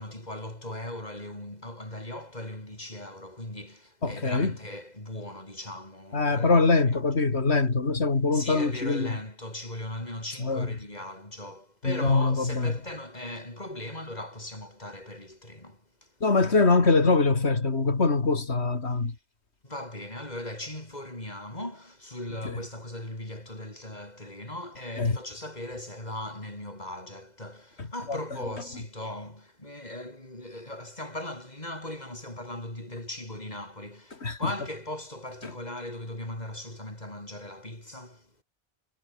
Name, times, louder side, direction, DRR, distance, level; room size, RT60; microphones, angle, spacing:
voice 1, 0.0-7.0 8.3-16.1 19.6-38.3, left 1 dB, 40° left, 6.0 m, -39 dB
voice 2, 4.0-4.5 6.1-9.1 10.4-10.7 11.8-12.7 16.2-19.1 25.0-25.1 28.1-28.2 34.2-34.4, left 3 dB, 85° left, 2.9 m, -23 dB
omnidirectional pair, 1.1 m